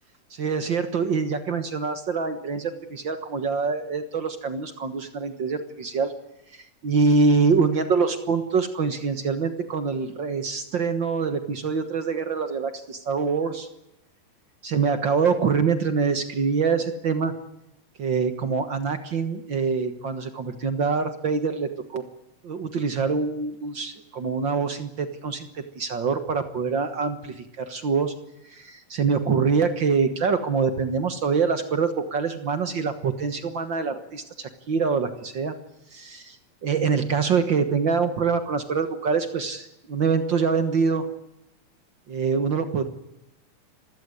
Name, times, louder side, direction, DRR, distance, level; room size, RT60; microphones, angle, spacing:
voice 1, 0.3-6.1 6.5-13.7 14.6-17.3 18.0-22.0 22.4-28.1 28.4-35.5 35.9-41.1 42.1-42.8, right 5 dB, 50° right, 9 dB, 1.4 m, -25 dB
27.0 x 16.0 x 9.8 m, 0.86 s
omnidirectional pair, 3.8 m